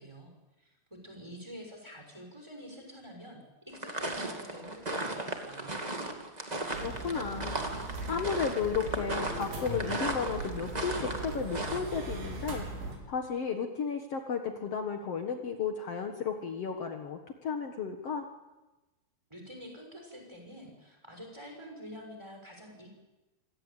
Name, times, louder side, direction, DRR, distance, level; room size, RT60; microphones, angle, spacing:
voice 1, 0.0-5.7 19.3-22.9, equal, 5° right, 2 dB, 5.8 m, -48 dB
sound 1, 3.7-11.8, right 2 dB, 50° right, 0.5 m, -36 dB
sound 2, 6.7-13.0, right 2 dB, 90° right, 6.8 m, -39 dB
voice 2, 6.8-7.6 7.9-12.7 13.1-18.3, left 6 dB, 75° left, 5 dB, 1.3 m, -33 dB
26.5 x 17.5 x 8.7 m, 1.1 s
omnidirectional pair, 5.4 m